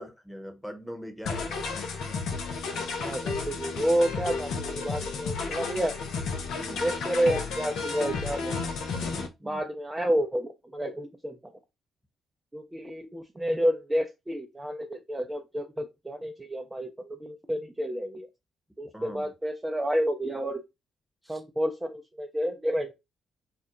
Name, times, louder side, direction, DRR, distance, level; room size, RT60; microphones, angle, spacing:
voice 1, 0.0-1.9 6.6-6.9 9.4-9.6 18.9-19.3 21.2-21.4, equal, ahead, 0.9 m, -42 dB
sound 1, 1.2-9.3, left 4 dB, 65° left, 0.5 m, -32 dB
voice 2, 3.0-5.9 6.8-8.6 9.4-11.5 12.5-18.3 18.8-20.6 21.3-22.9, equal, 15° right, 0.5 m, -30 dB
2.4 x 2.0 x 2.9 m
hypercardioid pair, 40°, 0 cm